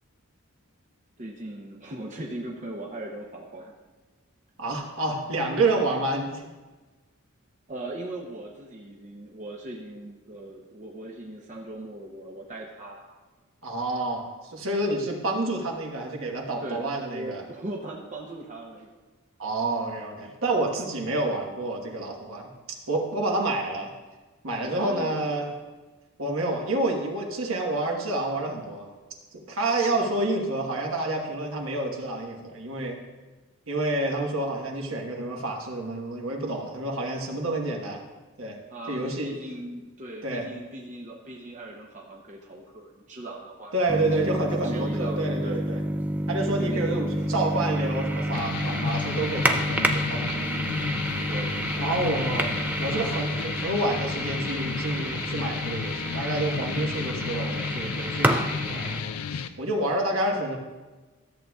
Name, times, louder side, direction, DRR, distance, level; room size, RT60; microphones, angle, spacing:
voice 1, 1.2-3.7 7.7-13.1 15.0-15.1 16.6-18.9 24.6-25.3 38.7-43.7 44.2-45.7 46.6-47.5 51.3-51.9, right 1 dB, 35° right, -1 dB, 0.7 m, -39 dB
voice 2, 4.6-6.4 13.6-17.4 19.4-22.5 22.9-23.9 24.4-25.5 26.2-28.9 29.3-33.0 33.7-38.0 38.4-38.6 38.9-39.3 40.2-40.5 43.7-45.8 46.3-50.5 51.8-52.5 52.8-60.6, right 2 dB, 65° right, 1 dB, 1.2 m, -29 dB
sound 1, 43.9-59.0, right 1 dB, 5° right, 0.4 m, -29 dB
sound 2, 48.3-59.5, left 6 dB, 90° left, 0.4 m, -33 dB
13.5 x 7.8 x 2.3 m, 1.3 s
head